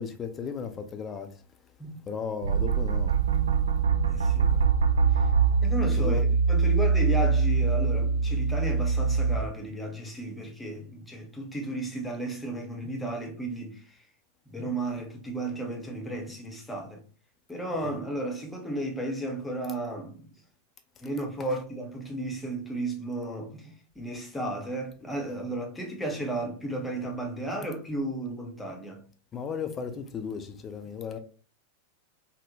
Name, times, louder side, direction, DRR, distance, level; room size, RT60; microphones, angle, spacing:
voice 1, 0.0-1.3 2.1-3.2 6.0-6.3 17.9-18.0 29.3-31.2, left 6 dB, 25° left, 0.4 m, -35 dB
sound 1, 2.4-9.4, right 5 dB, 70° right, 0.3 m, -23 dB
voice 2, 4.0-4.7 5.1-5.3 5.6-14.0 14.5-17.0 17.5-20.3 21.0-29.0, right 1 dB, 5° left, 0.8 m, -34 dB
3.5 x 2.1 x 2.7 m
figure-of-eight pair, 90°, 0 cm